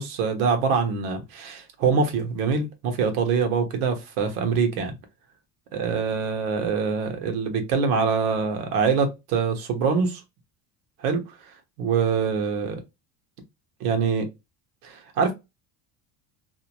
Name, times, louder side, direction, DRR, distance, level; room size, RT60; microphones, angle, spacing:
voice 1, 0.0-4.9 5.7-10.2 11.0-11.2 11.8-12.8 13.8-14.3 14.8-15.3, right 5 dB, 90° right, 1.0 m, -24 dB
2.7 x 2.1 x 2.9 m
supercardioid pair, 100°, 44 cm